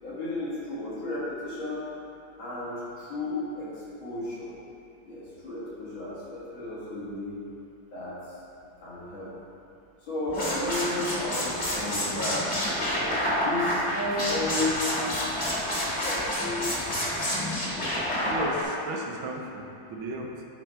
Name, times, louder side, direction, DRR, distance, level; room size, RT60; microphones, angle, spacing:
voice 1, 0.0-1.8 2.4-4.5 5.0-7.4 7.9-8.3 8.8-9.3 10.0-12.7 13.4-17.0, left 2 dB, 75° left, -8 dB, 2.5 m, -33 dB
sound 1, 10.3-18.6, equal, 25° left, 1.2 m, -29 dB
voice 2, 18.2-20.4, right 1 dB, 90° right, 1 dB, 1.5 m, -35 dB
8.6 x 3.5 x 4.3 m, 2.6 s
omnidirectional pair, 2.2 m